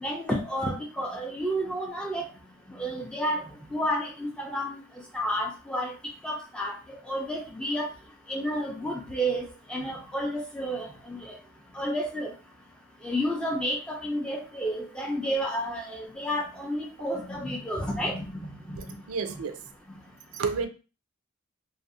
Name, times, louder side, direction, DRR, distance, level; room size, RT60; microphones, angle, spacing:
voice 1, 0.0-2.3 2.8-3.4 3.7-4.8 5.1-5.9 6.2-6.8 7.1-7.9 8.3-9.4 9.7-11.4 11.8-12.3 13.0-18.8, equal, 5° left, 0.3 m, -30 dB
voice 2, 18.8-19.6 20.3-20.7, right 5 dB, 80° right, 0.4 m, -31 dB
2.4 x 2.0 x 2.5 m
head